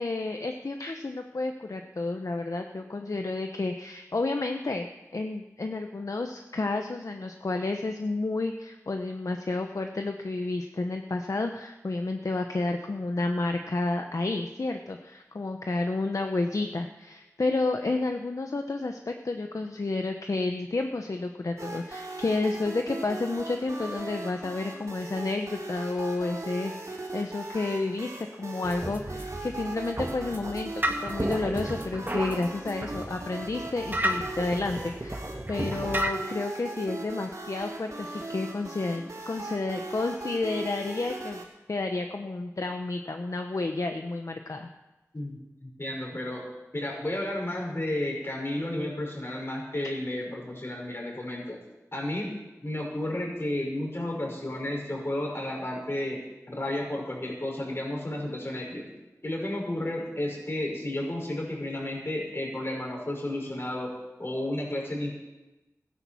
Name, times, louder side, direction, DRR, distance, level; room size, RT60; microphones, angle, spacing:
voice 1, 0.0-28.1 28.4-41.4 41.7-44.7, left 2 dB, 70° left, 5 dB, 0.9 m, -31 dB
sound 1, 21.6-41.4, right 2 dB, 70° right, 4.8 m, -39 dB
sound 2, 28.6-36.1, right 1 dB, 35° right, 1.9 m, -33 dB
voice 2, 45.1-46.4 46.7-51.6 51.9-52.3 52.6-58.9 59.2-63.9 64.2-65.2, left 1 dB, 45° left, -1 dB, 5.7 m, -32 dB
16.0 x 10.5 x 7.2 m, 1.1 s
wide cardioid pair, 45°, 6 cm